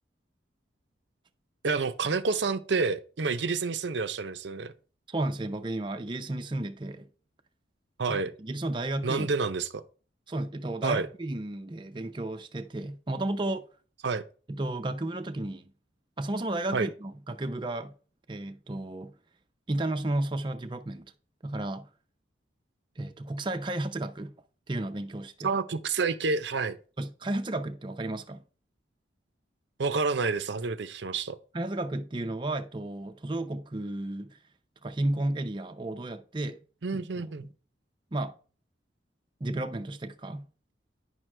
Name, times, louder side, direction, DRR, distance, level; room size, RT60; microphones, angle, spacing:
voice 1, 1.6-4.7 8.0-8.3 9.0-9.8 10.8-11.1 14.0-14.2 16.7-16.9 25.4-26.8 29.8-31.4 36.8-37.5, right 4 dB, 70° right, 0.6 m, -29 dB
voice 2, 5.1-7.1 8.1-9.3 10.3-13.7 14.5-15.7 16.2-17.9 18.3-19.2 19.7-21.1 21.4-21.9 23.0-24.3 24.7-25.5 27.0-28.4 31.5-34.4 34.8-36.6 36.9-37.5 38.1-38.3 39.4-40.5, right 1 dB, 25° right, 0.5 m, -33 dB
9.7 x 6.1 x 3.3 m
head